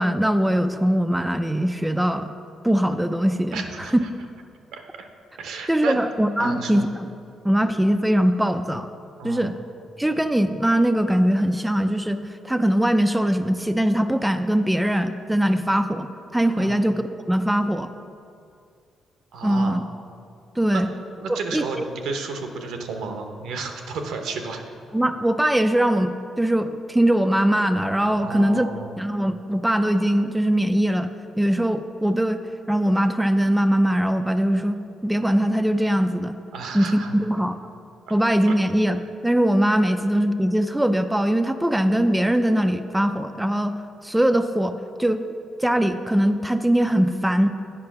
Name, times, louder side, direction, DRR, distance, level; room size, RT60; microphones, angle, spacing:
voice 1, 0.0-2.3 2.6-3.6 5.7-7.1 7.4-8.9 9.2-9.6 10.0-17.0 17.3-17.9 19.4-19.8 20.6-20.9 21.3-21.8 24.9-28.7 29.0-31.1 31.4-32.4 32.7-36.4 36.7-37.6 38.1-43.7 44.0-45.2 45.6-47.5, right 1 dB, 5° right, 8 dB, 0.4 m, -21 dB
voice 2, 3.5-4.1 4.7-4.8 5.4-6.0 6.4-6.9 9.2-9.5 16.6-16.8 19.3-19.8 20.7-20.8 21.2-24.6 28.2-28.9 36.5-37.1 38.5-38.6, right 4 dB, 80° right, 4 dB, 0.9 m, -32 dB
8.6 x 5.1 x 5.8 m, 2.4 s
cardioid pair, 90°, 0 cm